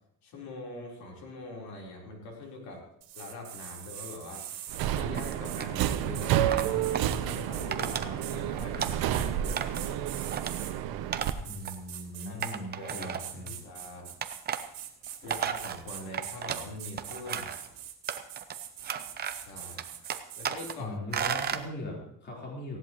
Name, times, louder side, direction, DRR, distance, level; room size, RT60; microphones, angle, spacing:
voice 1, 0.2-2.9 3.1-4.4 5.0-10.0 12.3-14.2 15.2-17.5 19.3-19.9 20.4-21.0, left 2 dB, 75° left, -1 dB, 4.1 m, -43 dB
sound 1, 3.0-10.7 11.2-12.6 12.9-20.8, right 10 dB, 65° right, 2.7 m, -43 dB
Subway metro underground, 4.7-11.3, right 11 dB, 80° right, 1.0 m, -30 dB
sound 2, 5.2-5.9 6.5-7.2 7.7-8.1 8.4-9.2 9.6-9.9 10.2-10.5 11.1-11.3 11.6-11.7 12.4-13.5 14.2-14.6 15.1-16.7 17.0-17.7 18.1-18.5 18.8-19.5 19.8-20.7 21.1-21.6, right 8 dB, 25° right, 0.7 m, -34 dB
voice 2, 11.4-13.5 20.8-22.8, left 1 dB, 30° left, -3 dB, 4.0 m, -39 dB
19.0 x 16.5 x 3.1 m, 0.75 s
cardioid pair, 175°, 36 cm